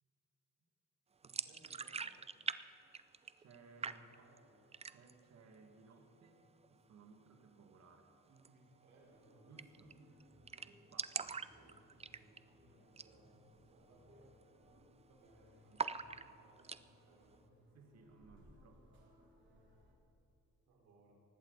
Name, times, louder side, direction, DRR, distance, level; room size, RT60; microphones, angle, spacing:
sound 1, 1.2-2.6 2.8-3.6 3.8-4.4 4.7-5.2 5.6-5.7 6.0-6.7 8.3-8.5 8.8-8.9 9.1-9.2 9.6-9.9 10.2-10.3 10.5-12.5 12.9-13.2 13.5-13.6 14.1-14.4 14.7-15.3 15.8-16.8, right 5 dB, 20° right, 0.4 m, -43 dB
voice 1, 1.2-2.0 3.8-4.7 8.3-9.5 11.2-14.3 15.1-17.5 20.6-21.1, right 2 dB, 85° right, -3 dB, 4.3 m, -67 dB
voice 2, 3.4-4.3 4.9-6.4 6.7-8.1 9.5-10.0 10.6-11.5 15.7-15.8 17.7-18.9, right 4 dB, 60° right, 3 dB, 2.1 m, -61 dB
sound 2, 9.0-19.9, equal, 40° right, 4.0 m, -66 dB
19.0 x 15.0 x 4.1 m, 3.0 s
cardioid pair, 90°, 30 cm